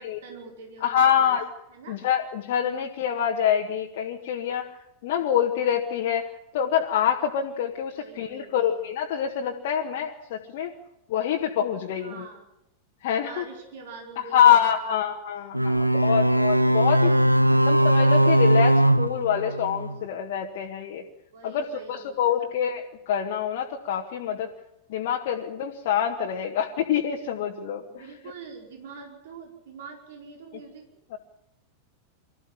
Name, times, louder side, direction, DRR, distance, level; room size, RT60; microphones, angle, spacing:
voice 1, 0.0-1.4 1.7-2.0 7.9-8.9 11.9-12.4 13.2-14.9 15.9-16.3 21.3-22.5 27.9-31.2, right 5 dB, 60° right, 2 dB, 4.9 m, -45 dB
voice 2, 0.8-1.5 1.9-4.7 5.0-6.3 6.5-10.7 11.1-12.3 13.0-13.4 14.3-17.2 17.7-21.0 21.4-24.5 24.9-28.0 31.1-31.2, left 9 dB, 50° left, 0 dB, 1.8 m, -25 dB
sound 1, 15.5-20.0, right 1 dB, 90° right, 0.8 m, -20 dB
24.0 x 14.0 x 9.9 m, 0.82 s
figure-of-eight pair, 90°, 0 cm